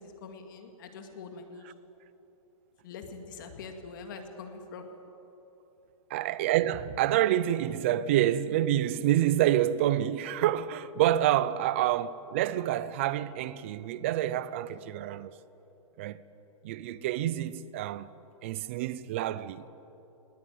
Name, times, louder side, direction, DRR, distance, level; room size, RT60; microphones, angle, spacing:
voice 1, 0.0-1.7 2.8-4.8, left 4 dB, 35° left, 2.1 m, -44 dB
voice 2, 6.1-15.3 16.0-16.2 16.6-18.1 18.4-19.7, right 12 dB, 20° right, 0.5 m, -27 dB
20.0 x 19.0 x 9.5 m
hypercardioid pair, 175°, 18 cm